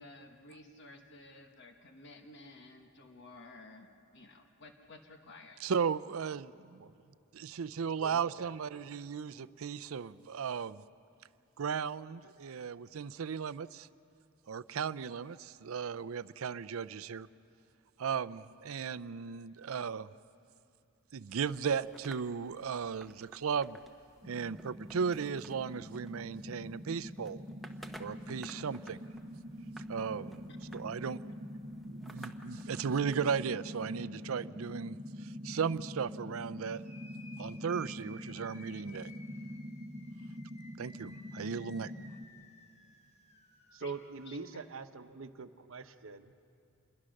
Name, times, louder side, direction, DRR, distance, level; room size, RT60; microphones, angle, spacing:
voice 1, 0.0-3.9 4.1-5.6 43.8-43.9, left 2 dB, 55° left, 4 dB, 1.3 m, -53 dB
voice 2, 5.6-6.8 7.3-10.8 11.6-13.9 14.5-17.3 18.0-20.1 21.1-23.8 24.3-27.4 28.0-29.0 29.9-30.4 30.7-31.2 31.9-36.8 37.4-39.1 40.8-41.9, right 6 dB, 85° right, 15 dB, 0.5 m, -36 dB
voice 3, 8.0-8.5 43.7-46.3, right 4 dB, 70° right, 10 dB, 0.9 m, -44 dB
sound 1, 21.3-33.3, right 1 dB, ahead, 1.0 m, -56 dB
sound 2, 24.2-42.2, equal, 25° right, 1.1 m, -45 dB
sound 3, 36.6-44.5, left 1 dB, 30° left, 1.7 m, -57 dB
27.5 x 22.0 x 6.4 m, 2.5 s
head